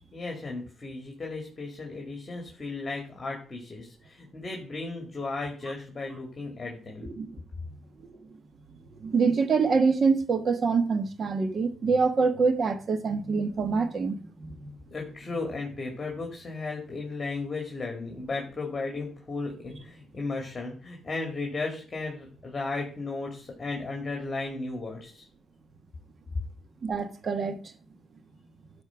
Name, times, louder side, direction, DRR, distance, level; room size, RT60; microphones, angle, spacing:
voice 1, 0.1-7.1 14.9-25.3, left 3 dB, 30° left, 2.4 m, -35 dB
voice 2, 7.0-7.4 8.0-8.4 9.0-14.7 26.8-27.6, right 4 dB, 45° right, 1.3 m, -26 dB
12.0 x 4.4 x 6.0 m
cardioid pair, 90°, 0 cm